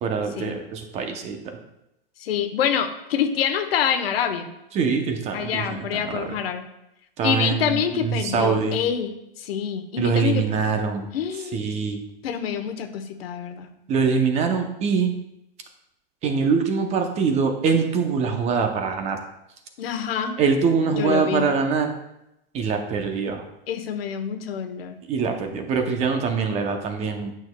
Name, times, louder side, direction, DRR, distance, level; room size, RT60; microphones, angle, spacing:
voice 1, 0.0-1.6 4.7-6.4 7.2-8.8 10.0-11.1 11.5-12.0 13.9-15.1 16.2-19.2 20.4-21.9 22.5-23.5 25.1-27.3, right 5 dB, 25° right, 5 dB, 0.6 m, -23 dB
voice 2, 2.2-4.5 5.3-6.6 7.2-9.1 9.4-10.5 11.1-11.7 12.2-13.7 19.8-20.4 20.9-21.5 23.7-25.0, left 8 dB, 90° left, 7 dB, 0.9 m, -26 dB
9.2 x 6.3 x 2.2 m, 0.86 s
supercardioid pair, 150°, 29 cm